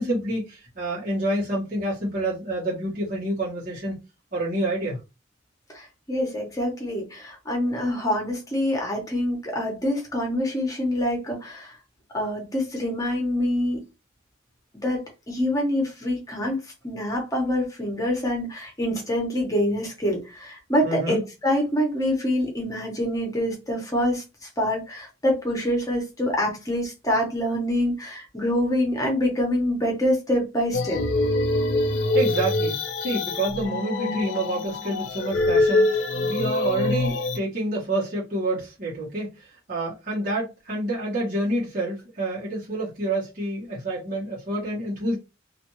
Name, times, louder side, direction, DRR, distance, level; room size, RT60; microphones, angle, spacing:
voice 1, 0.0-3.9 4.3-5.0 20.8-21.2 32.1-45.2, right 1 dB, 50° right, 1.2 m, -28 dB
voice 2, 5.7-11.8 12.1-13.8 14.8-15.0 15.3-16.6 16.8-31.0, left 1 dB, 20° left, 0.9 m, -26 dB
sound 1, 30.7-37.4, left 2 dB, 90° left, 0.5 m, -24 dB
2.5 x 2.5 x 2.9 m
head